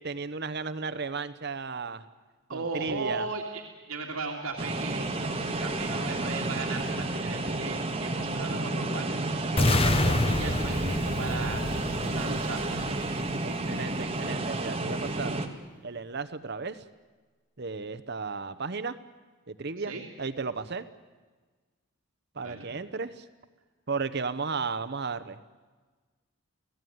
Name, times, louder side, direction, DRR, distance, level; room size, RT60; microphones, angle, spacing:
voice 1, 0.0-2.0 2.5-3.3 13.4-15.4 15.8-16.8 17.6-19.0 19.5-20.9 22.3-23.3 23.9-25.4, right 4 dB, 50° right, 13 dB, 0.9 m, -34 dB
voice 2, 2.5-3.6 3.9-11.6 12.0-13.1 19.8-20.0 22.4-22.7, right 3 dB, 80° right, 1 dB, 2.6 m, -37 dB
sound 1, 4.6-15.5, right 2 dB, 25° right, 1.9 m, -31 dB
sound 2, 9.6-13.6, left 1 dB, 25° left, 1.1 m, -28 dB
28.5 x 17.5 x 9.4 m, 1.4 s
head